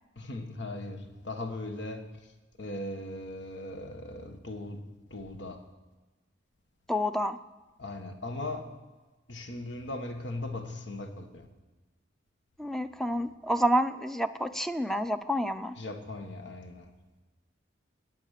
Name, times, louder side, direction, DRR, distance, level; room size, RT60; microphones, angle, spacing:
voice 1, 0.1-2.1 2.6-4.8 5.1-5.7 7.8-8.6 9.3-11.5 15.8-16.9, left 2 dB, 65° left, 1.6 m, -38 dB
voice 2, 6.9-7.4 12.6-15.8, equal, ahead, 0.5 m, -29 dB
21.0 x 9.2 x 6.7 m
head